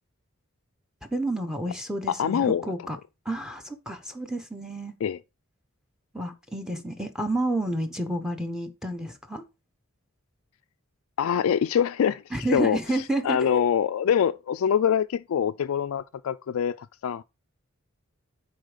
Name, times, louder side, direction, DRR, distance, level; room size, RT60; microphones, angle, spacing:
voice 1, 1.1-3.0 3.2-4.9 6.1-9.4 12.3-13.6, right 1 dB, 5° right, 1.0 m, -30 dB
voice 2, 2.1-2.7 5.0-5.2 11.2-12.2 12.5-17.2, left 8 dB, 80° left, 0.3 m, -25 dB
10.5 x 4.4 x 4.9 m
head